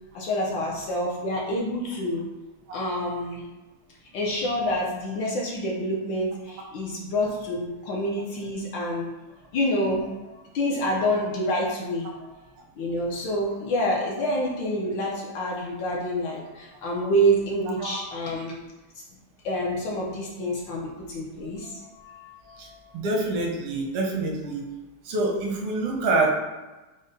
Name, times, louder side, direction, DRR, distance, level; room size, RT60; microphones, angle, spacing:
voice 1, 0.1-2.3 2.7-3.4 4.1-9.1 9.5-12.3 12.8-18.5 18.9-19.0 19.4-22.8, equal, 75° left, -2 dB, 1.2 m, -27 dB
voice 2, 22.9-24.6 25.0-26.3, right 2 dB, 85° right, 0 dB, 1.7 m, -26 dB
5.0 x 2.1 x 4.0 m, 1.1 s
omnidirectional pair, 2.4 m